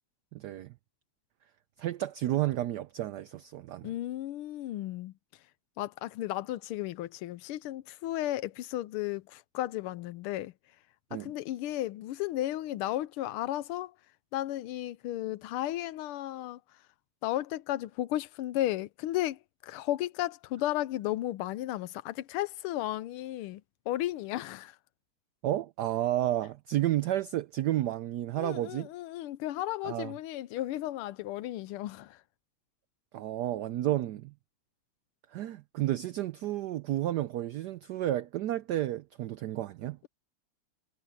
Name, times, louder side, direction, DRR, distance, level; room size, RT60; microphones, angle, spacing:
voice 1, 0.3-0.7 1.8-3.9 11.1-11.3 25.4-28.9 29.8-30.1 33.1-34.3 35.3-40.0, right 13 dB, 90° right, 0.9 m, -31 dB
voice 2, 3.8-5.5 5.8-10.5 11.1-13.9 14.3-16.9 17.2-24.8 28.4-32.2, left 14 dB, 90° left, 1.5 m, -34 dB
omnidirectional pair, 2.4 m